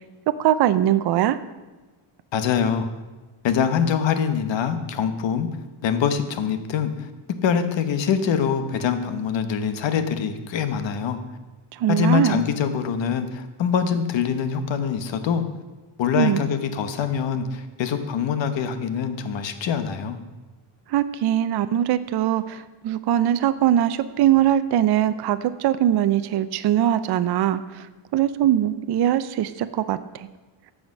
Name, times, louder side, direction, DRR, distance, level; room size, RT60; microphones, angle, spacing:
voice 1, 0.3-1.4 11.7-12.4 16.2-16.4 20.9-27.9 28.1-30.3, right 11 dB, 55° right, 12 dB, 0.5 m, -21 dB
voice 2, 2.3-2.9 3.4-5.5 5.8-7.1 7.4-11.2 11.9-15.4 16.0-20.2, left 7 dB, 65° left, 9 dB, 1.0 m, -24 dB
14.0 x 5.0 x 6.3 m, 1.2 s
cardioid pair, 160°, 48 cm